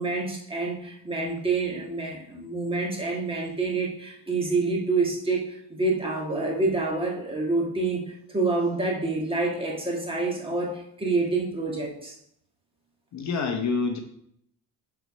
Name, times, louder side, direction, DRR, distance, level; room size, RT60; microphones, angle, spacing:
voice 1, 0.0-12.2, right 3 dB, 15° right, -2 dB, 1.7 m, -27 dB
voice 2, 13.1-14.0, left 4 dB, 45° left, 4 dB, 1.0 m, -27 dB
6.5 x 4.8 x 5.3 m, 0.71 s
cardioid pair, 150°, 39 cm